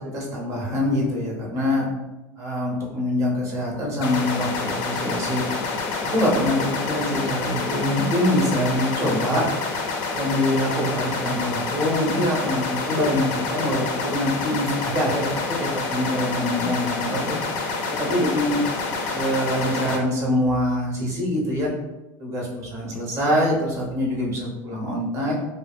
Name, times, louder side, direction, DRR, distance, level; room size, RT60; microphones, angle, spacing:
voice 1, 0.0-1.9 2.4-5.4 6.0-9.5 10.1-17.4 18.0-18.6 19.1-21.7 22.2-25.3, left 1 dB, 35° right, -3 dB, 0.8 m, -24 dB
sound 1, 4.0-20.0, left 4 dB, 60° left, 0.5 m, -28 dB
2.1 x 2.0 x 3.3 m, 1.0 s
supercardioid pair, 125°, 9 cm